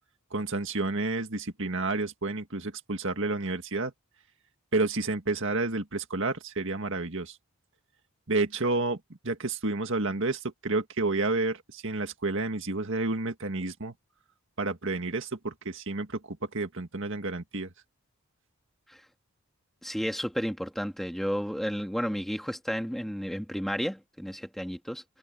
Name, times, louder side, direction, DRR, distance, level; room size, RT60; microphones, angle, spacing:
voice 1, 0.3-3.9 4.7-7.3 8.3-9.0 9.2-13.9 14.6-17.7, right 3 dB, 60° right, 2.0 m, -30 dB
voice 2, 19.8-25.0, equal, ahead, 1.5 m, -32 dB
head